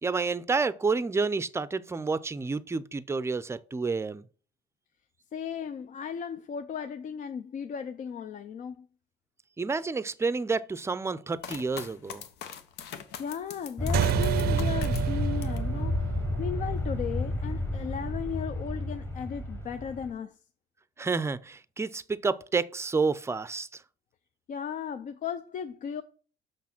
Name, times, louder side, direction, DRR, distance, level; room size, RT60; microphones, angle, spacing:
voice 1, 0.0-4.2 9.6-12.2 21.0-23.8, right 4 dB, 15° right, 0.5 m, -29 dB
voice 2, 5.3-8.9 13.2-20.4 24.5-26.0, left 7 dB, 50° left, 0.6 m, -36 dB
sound 1, 11.4-15.7 16.1-16.8, left 8 dB, 80° left, 1.0 m, -42 dB
Aircraft, 13.8-20.1, left 1 dB, 15° left, 1.2 m, -31 dB
sound 2, 13.9-18.8, right 12 dB, 65° right, 0.5 m, -31 dB
6.5 x 6.0 x 5.9 m
cardioid pair, 110°, 17 cm